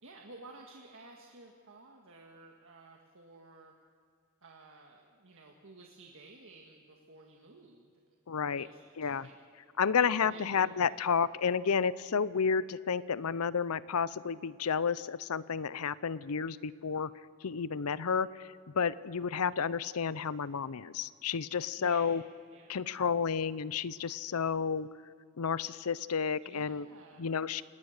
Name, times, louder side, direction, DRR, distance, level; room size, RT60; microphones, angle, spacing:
voice 1, 0.0-3.7 4.4-7.9 8.4-9.4 10.2-10.5 21.8-22.2 22.5-22.8 26.4-27.3, right 3 dB, 65° right, 1 dB, 1.8 m, -54 dB
voice 2, 8.3-8.7 9.0-9.3 9.8-17.1 17.4-18.5 18.7-22.2 22.7-24.9 25.4-26.9 27.2-27.6, left 6 dB, 90° left, 18 dB, 0.6 m, -31 dB
30.0 x 18.0 x 6.6 m, 2.1 s
head